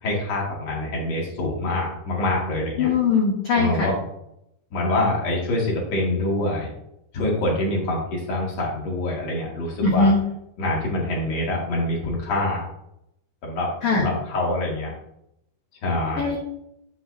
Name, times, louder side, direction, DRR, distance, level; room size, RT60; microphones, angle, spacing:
voice 1, 0.0-2.9 3.5-3.9 4.7-6.7 7.1-10.1 10.6-12.6 13.4-13.7 14.0-14.9 15.8-16.2, left 1 dB, 45° left, -3 dB, 2.8 m, -25 dB
voice 2, 2.8-3.9 9.8-10.2 13.8-14.1 16.2-16.4, left 4 dB, 80° left, -2 dB, 1.3 m, -20 dB
9.5 x 7.1 x 2.7 m, 0.80 s
omnidirectional pair, 4.6 m